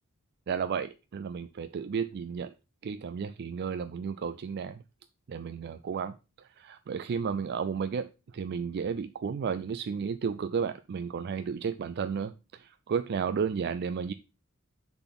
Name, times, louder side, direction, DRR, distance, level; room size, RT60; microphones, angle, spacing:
voice 1, 0.5-2.5 2.8-4.8 5.3-8.1 8.3-14.1, right 6 dB, 50° right, 0.4 m, -33 dB
6.8 x 4.1 x 5.8 m
head